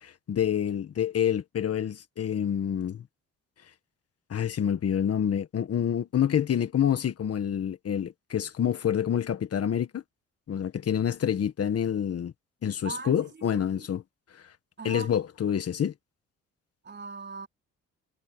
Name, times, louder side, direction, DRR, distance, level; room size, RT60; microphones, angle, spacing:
voice 1, 0.0-3.0 4.3-10.0 10.5-12.3 12.6-14.0 14.8-15.9, left 9 dB, 50° left, 1.6 m, -27 dB
voice 2, 12.8-13.9 14.8-15.1 16.8-17.5, right 4 dB, 35° right, 4.3 m, -40 dB
cardioid pair, 90°, 30 cm